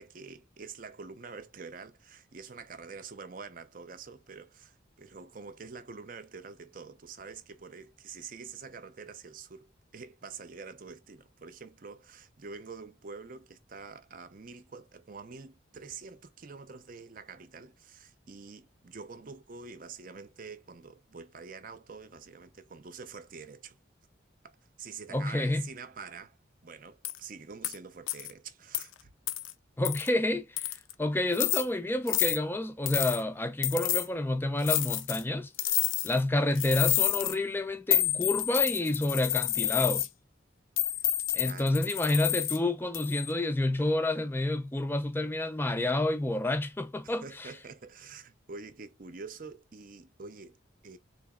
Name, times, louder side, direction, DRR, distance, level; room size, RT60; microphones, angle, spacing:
voice 1, 0.0-23.8 24.4-26.4 26.6-29.1 40.9-41.1 41.4-41.8 47.0-51.0, right 5 dB, 45° right, 0.6 m, -46 dB
voice 2, 25.1-25.6 29.8-35.5 36.0-40.1 41.3-47.5, left 1 dB, 10° left, 0.4 m, -29 dB
sound 1, 27.0-27.2 27.6-27.8 28.1-28.3 28.7-28.8 29.3-29.5 29.9-30.1 30.6-30.9 31.3-31.6 32.1-32.4 32.9-33.2 33.6-34.1 34.6-35.2 35.6-36.2 36.6-37.4 37.9-40.1 40.8-42.6 42.9-43.3, left 12 dB, 90° left, 0.5 m, -29 dB
3.9 x 2.9 x 2.3 m
head